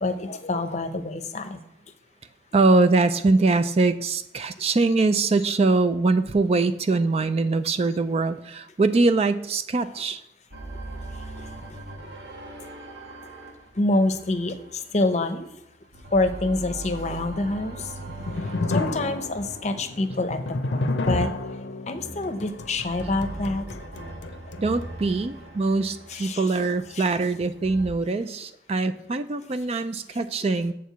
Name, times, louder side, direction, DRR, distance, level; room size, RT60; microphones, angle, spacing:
voice 1, 0.0-1.6 13.8-15.5 16.1-17.9 18.7-21.3 21.9-23.7 26.1-26.5 26.9-27.0, left 2 dB, 40° left, 8 dB, 0.7 m, -26 dB
voice 2, 2.5-10.2 24.6-30.7, right 3 dB, 35° right, 11 dB, 0.4 m, -23 dB
sound 1, 10.5-15.5 15.8-21.1 21.9-27.9, right 2 dB, 85° right, 1.3 m, -41 dB
sound 2, 17.8-24.9, left 2 dB, 90° left, 0.6 m, -31 dB
7.3 x 4.7 x 6.8 m, 0.82 s
head